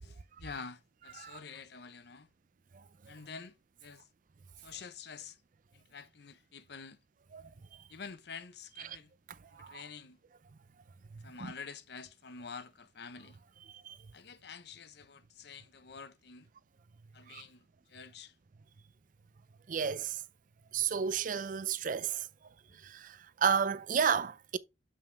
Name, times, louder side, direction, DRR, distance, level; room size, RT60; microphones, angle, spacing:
voice 1, 0.0-2.3 3.1-4.1 4.6-5.4 5.7-7.0 7.9-9.1 9.5-10.2 11.2-13.4 14.1-16.5 17.1-18.4 22.7-22.8, left 5 dB, 65° left, 0.8 m, -48 dB
voice 2, 19.7-20.2 20.7-22.3 22.8-24.6, right 7 dB, 50° right, 0.4 m, -32 dB
7.1 x 5.6 x 3.3 m
head